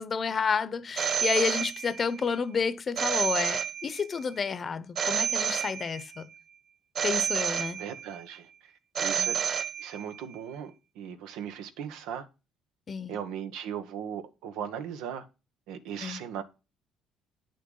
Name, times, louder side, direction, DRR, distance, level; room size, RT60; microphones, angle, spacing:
voice 1, 0.0-6.3 7.0-7.8 9.2-9.3 12.9-13.1 16.0-16.2, left 5 dB, 40° left, 0.9 m, -30 dB
Telephone, 1.0-2.2 3.0-4.2 5.0-6.2 7.0-8.2 9.0-10.2, right 8 dB, 45° right, 0.7 m, -30 dB
voice 2, 7.8-8.5 9.0-9.4 9.8-12.3 13.1-15.2 15.7-16.4, right 8 dB, 85° right, 1.3 m, -38 dB
9.7 x 6.7 x 4.0 m
supercardioid pair, 85°, 0 cm